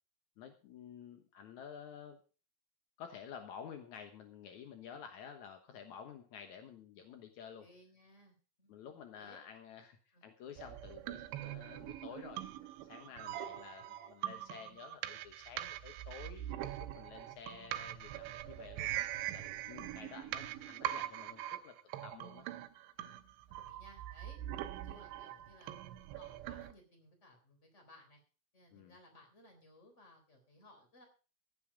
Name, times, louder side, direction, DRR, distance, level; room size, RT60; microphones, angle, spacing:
voice 1, 0.4-2.2 3.0-7.7 8.7-12.4 12.8-16.5 16.8-18.9 19.3-21.8 22.0-22.5 28.7-29.0, left 7 dB, 80° left, 6 dB, 1.7 m, -51 dB
voice 2, 7.6-8.7 9.1-9.4 10.1-10.2 19.7-19.9 23.5-24.4 24.7-25.8 26.1-28.2 28.5-31.0, left 1 dB, 15° left, 5 dB, 3.5 m, -61 dB
sound 1, 10.6-26.7, right 13 dB, 85° right, 3.1 m, -43 dB
15.0 x 9.3 x 5.0 m, 0.36 s
omnidirectional pair, 5.2 m